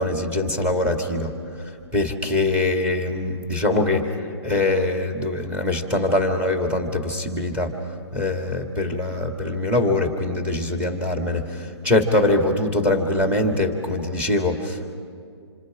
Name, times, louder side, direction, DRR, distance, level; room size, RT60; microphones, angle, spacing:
voice 1, 0.0-7.8 8.1-14.9, left 2 dB, 10° right, 3 dB, 2.1 m, -23 dB
27.0 x 26.0 x 5.0 m, 2.2 s
hypercardioid pair, 150°, 14 cm